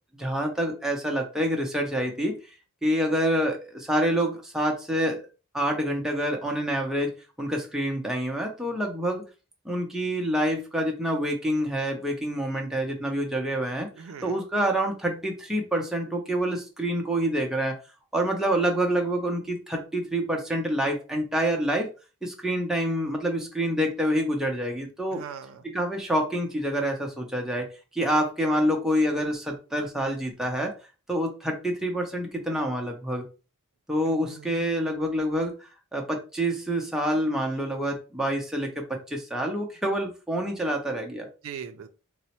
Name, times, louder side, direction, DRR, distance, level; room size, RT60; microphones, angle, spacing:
voice 1, 0.1-2.3 2.8-5.2 5.5-7.1 7.4-9.2 9.7-13.9 14.2-17.8 18.1-21.9 22.2-25.2 25.6-27.7 27.9-30.7 31.1-33.2 33.9-41.3, equal, ahead, 0.5 m, -27 dB
voice 2, 13.9-14.4 25.1-25.6 34.1-34.7 41.4-41.9, right 7 dB, 70° right, 0.4 m, -41 dB
4.0 x 2.0 x 2.8 m
head